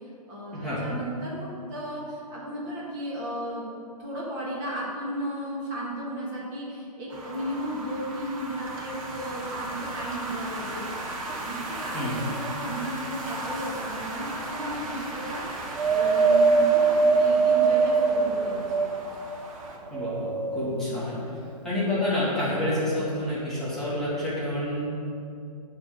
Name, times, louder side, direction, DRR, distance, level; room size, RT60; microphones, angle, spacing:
voice 1, 0.3-3.7 4.0-10.9 11.4-18.9, right 1 dB, 25° right, -5 dB, 1.6 m, -34 dB
sound 1, 7.1-19.8, right 2 dB, 55° right, 1.4 m, -37 dB
Wind, 15.8-19.3 19.9-20.9 21.7-21.8, right 4 dB, 80° right, 0.6 m, -22 dB
voice 2, 19.9-21.2 21.6-24.8, left 1 dB, ahead, -11 dB, 1.7 m, -28 dB
9.5 x 3.7 x 6.7 m, 2.5 s
hypercardioid pair, 160°, 21 cm